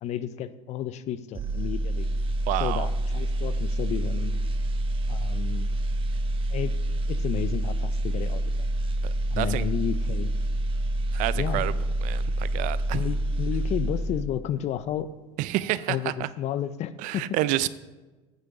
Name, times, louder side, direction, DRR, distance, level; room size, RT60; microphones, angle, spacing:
voice 1, 0.0-2.1 2.6-4.4 5.1-5.7 6.5-6.8 7.1-8.5 9.3-10.3 11.3-11.8 12.9-15.1 15.9-17.3, left 10 dB, 45° left, 15 dB, 0.6 m, -32 dB
sound 1, 1.3-14.5 14.8-15.0, right 1 dB, 35° right, 0.8 m, -27 dB
voice 2, 2.5-2.9 9.0-9.6 11.1-11.7 12.0-13.0 15.4-16.3 17.0-17.7, right 15 dB, 60° right, 18 dB, 0.5 m, -29 dB
9.1 x 6.7 x 4.8 m, 1.2 s
hypercardioid pair, 90°, 15 cm